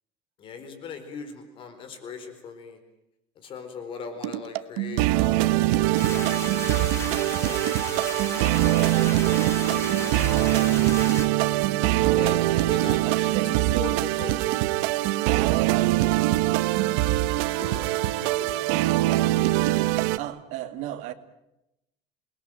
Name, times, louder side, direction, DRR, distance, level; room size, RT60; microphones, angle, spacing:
voice 1, 0.4-2.8 3.4-7.0 7.3-7.6 8.0-10.7 11.0-11.3 12.1-13.9 14.2-14.4 17.1-18.7, left 6 dB, 40° left, 4.5 m, -41 dB
sound 1, 4.2-20.2, right 16 dB, 85° right, 1.1 m, -23 dB
sound 2, 6.0-11.3, left 5 dB, 20° left, 1.7 m, -36 dB
voice 2, 8.9-9.4 12.2-14.2 20.0-21.1, right 13 dB, 65° right, 2.2 m, -36 dB
28.0 x 20.5 x 9.1 m
cardioid pair, 155°, 13 cm